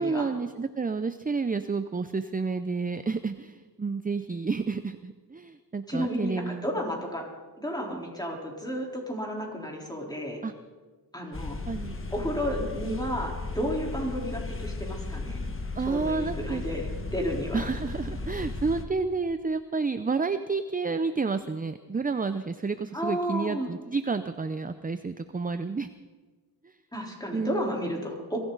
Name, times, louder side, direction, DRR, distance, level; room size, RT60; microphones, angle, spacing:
voice 1, 0.0-6.7 10.4-10.5 11.7-12.0 15.8-16.7 17.5-25.9 26.6-26.7 27.3-27.8, right 4 dB, 20° right, 11 dB, 0.6 m, -30 dB
voice 2, 5.9-7.2 7.6-10.4 11.1-11.6 12.1-15.5 15.9-17.6 22.9-23.7 26.9-28.4, equal, 10° left, -1 dB, 3.8 m, -32 dB
sound 1, 11.3-18.8, left 3 dB, 30° left, 1.4 m, -35 dB
22.5 x 15.5 x 4.0 m, 1.4 s
wide cardioid pair, 90°, 41 cm